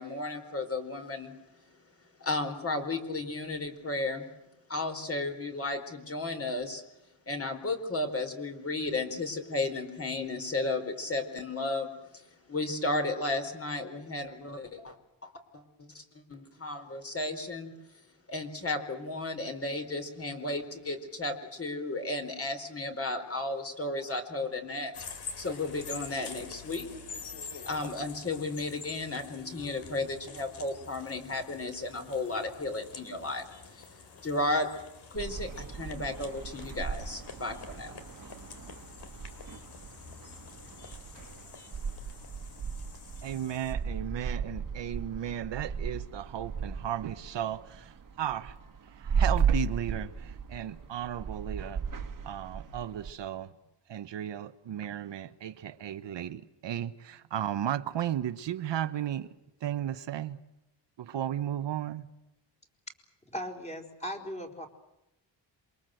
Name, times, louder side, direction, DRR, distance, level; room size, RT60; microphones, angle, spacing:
voice 1, 0.0-1.3 2.2-4.3 4.7-6.8 7.3-11.9 12.1-14.9 15.2-17.7 18.3-24.9 25.4-26.9 27.6-34.7 35.1-38.0, left 2 dB, 30° left, 4.4 m, -34 dB
sound 1, 24.9-43.7, left 5 dB, 60° left, 3.8 m, -47 dB
sound 2, 35.1-53.1, right 6 dB, 45° right, 1.9 m, -36 dB
voice 2, 43.2-48.6 48.8-51.8 52.2-53.5 53.9-59.3 59.6-60.4 61.0-62.1, right 10 dB, 70° right, 1.3 m, -35 dB
voice 3, 63.3-64.7, equal, 15° left, 4.4 m, -38 dB
27.5 x 24.0 x 7.9 m
wide cardioid pair, 145°, 45 cm